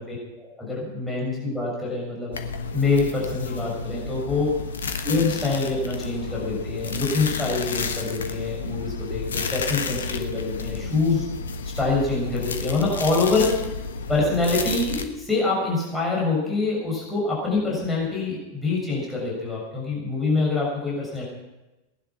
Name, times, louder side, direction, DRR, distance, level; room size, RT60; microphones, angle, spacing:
voice 1, 0.0-2.3 2.7-4.5 5.0-11.2 11.8-13.6 14.1-21.2, left 3 dB, 5° left, -5 dB, 6.4 m, -25 dB
sound 1, 2.3-15.1, left 4 dB, 65° left, 1.2 m, -31 dB
18.5 x 11.0 x 6.0 m, 1.0 s
figure-of-eight pair, 90°, 0 cm